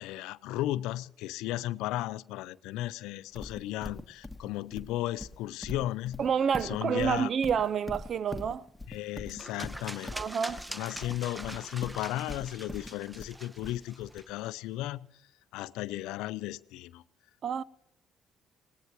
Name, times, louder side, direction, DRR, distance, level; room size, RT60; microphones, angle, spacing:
voice 1, 0.0-6.2 6.6-7.3 8.9-10.2 10.7-15.1 15.5-17.0, left 15 dB, 75° left, 0.4 m, -35 dB
Livestock farm animals working animals, 3.4-14.2, left 2 dB, 10° left, 1.5 m, -42 dB
voice 2, 6.2-8.6 10.1-10.6 17.4-17.6, right 7 dB, 55° right, 0.5 m, -28 dB
sound 1, 9.3-14.5, right 1 dB, 10° right, 0.9 m, -44 dB
19.5 x 18.5 x 3.0 m
hypercardioid pair, 55°, 0 cm